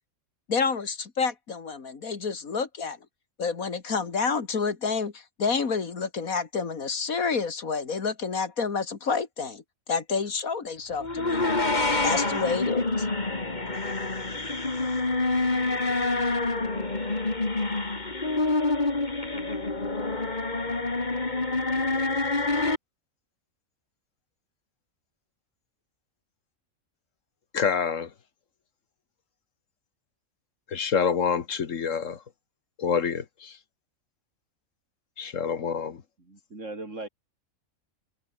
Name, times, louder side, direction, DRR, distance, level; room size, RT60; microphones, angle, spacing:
voice 1, 0.5-3.0 3.4-9.6 9.9-11.4 12.0-13.1, left 5 dB, 85° left, 2.6 m, -29 dB
sound 1, 11.0-22.8, left 2 dB, 30° left, 2.6 m, -27 dB
voice 2, 27.5-28.1 30.7-32.2 32.8-33.5 35.2-36.0, left 6 dB, 65° left, 1.6 m, -27 dB
voice 3, 36.2-37.1, right 2 dB, 60° right, 4.4 m, -38 dB
omnidirectional pair, 1.4 m